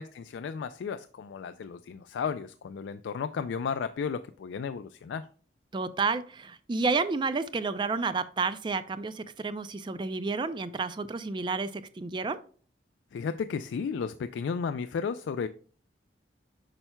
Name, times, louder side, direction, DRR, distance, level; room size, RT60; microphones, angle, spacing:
voice 1, 0.0-5.3 13.1-15.5, left 6 dB, 85° left, 10 dB, 0.3 m, -34 dB
voice 2, 5.7-12.4, right 4 dB, 25° right, 13 dB, 0.3 m, -30 dB
8.8 x 5.6 x 2.2 m, 0.43 s
head